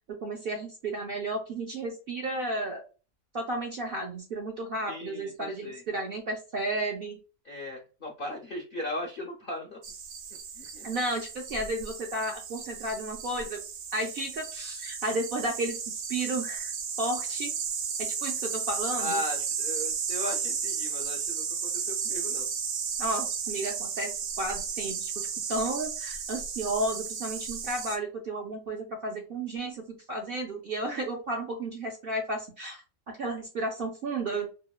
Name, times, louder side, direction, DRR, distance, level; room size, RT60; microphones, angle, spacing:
voice 1, 0.1-2.8 3.3-7.2 10.8-13.6 13.9-16.7 17.0-17.5 18.0-19.2 23.0-32.8 33.1-34.5, right 1 dB, 65° right, 1 dB, 0.5 m, -33 dB
voice 2, 4.9-5.8 7.4-9.8 10.5-10.9 19.0-22.5, left 1 dB, 65° left, 0 dB, 0.5 m, -37 dB
sound 1, 9.8-28.0, right 6 dB, 80° right, 1.0 m, -34 dB
3.0 x 2.0 x 2.2 m, 0.34 s
omnidirectional pair, 1.4 m